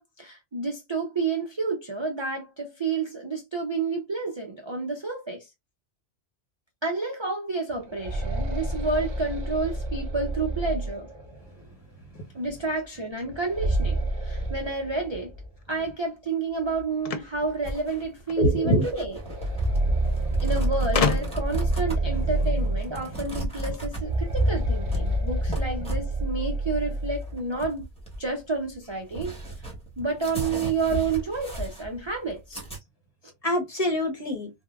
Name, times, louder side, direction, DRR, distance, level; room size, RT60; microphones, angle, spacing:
voice 1, 0.0-5.5 6.8-11.1 12.3-15.3 15.7-19.2 20.4-27.8 28.2-29.4 30.0-32.6, right 3 dB, 40° right, 0.4 m, -30 dB
sound 1, 7.7-11.5 13.3-15.5 15.8-15.9 16.8-16.9 17.3-17.5 19.1-23.3 23.9-27.3, right 1 dB, 60° right, 1.0 m, -28 dB
sound 2, 17.0-18.4 19.5-19.6 19.9-20.0 20.9-21.6, left 7 dB, 70° left, 0.3 m, -28 dB
sound 3, 17.6-32.8, right 1 dB, 5° left, 0.9 m, -36 dB
voice 2, 18.4-18.9 19.7-20.5 33.4-34.5, equal, 35° left, 0.8 m, -26 dB
3.4 x 2.2 x 2.2 m
omnidirectional pair, 1.2 m